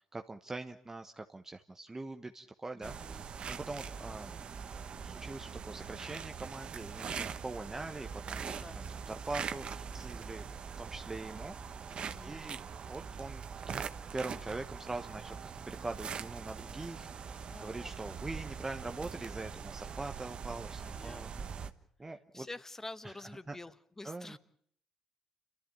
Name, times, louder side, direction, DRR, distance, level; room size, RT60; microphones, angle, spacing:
voice 1, 0.0-3.0 3.5-4.3 4.9-10.4 10.8-11.6 11.9-13.9 14.1-21.3 22.0-22.5 23.0-23.1 23.5-23.6 24.0-24.4, right 2 dB, 20° right, 5 dB, 1.2 m, -43 dB
voice 2, 2.7-3.2 8.5-8.8 12.1-12.5 17.5-17.9 20.8-21.4 22.0-24.4, left 2 dB, 20° left, 15 dB, 1.2 m, -48 dB
sound 1, 2.8-21.7, right 6 dB, 50° right, 1.2 m, -42 dB
29.0 x 13.5 x 8.8 m, 0.66 s
supercardioid pair, 60°, 2 cm